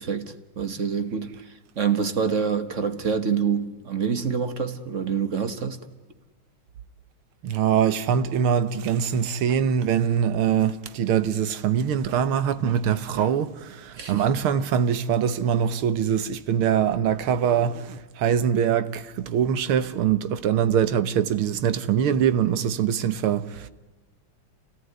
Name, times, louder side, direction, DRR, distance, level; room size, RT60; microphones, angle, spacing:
voice 1, 0.0-5.8 14.0-14.3, right 6 dB, 40° right, 1.5 m, -26 dB
voice 2, 7.4-23.7, right 8 dB, 85° right, 2.0 m, -23 dB
27.5 x 18.0 x 9.4 m
omnidirectional pair, 2.3 m